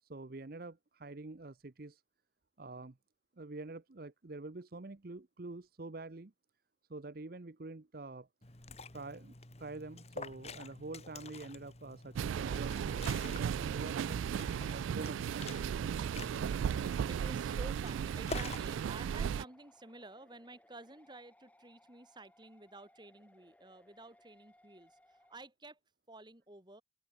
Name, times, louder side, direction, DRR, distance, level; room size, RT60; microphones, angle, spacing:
voice 1, 0.0-2.0 2.6-3.0 3.4-6.3 6.9-8.3 8.9-14.2 14.7-15.5, right 2 dB, 50° right, 0.8 m, -46 dB
Liquid, 8.4-18.7, left 3 dB, 35° left, 2.3 m, -48 dB
sound 1, 12.2-19.4, right 8 dB, 90° right, 0.3 m, -35 dB
voice 2, 17.1-25.8 26.1-26.8, right 2 dB, 25° right, 2.7 m, -52 dB
sound 2, 18.7-25.4, left 1 dB, 10° left, 3.0 m, -66 dB
open air
head